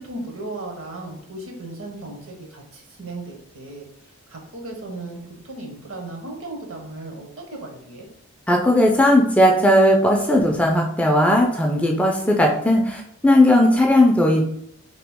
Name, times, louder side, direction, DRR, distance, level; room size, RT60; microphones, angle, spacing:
voice 1, 0.0-3.9 4.3-5.2 5.4-8.1, right 2 dB, 65° right, 1 dB, 0.9 m, -36 dB
voice 2, 8.5-14.4, left 1 dB, 5° left, 0 dB, 0.3 m, -17 dB
2.9 x 2.7 x 3.4 m, 0.71 s
head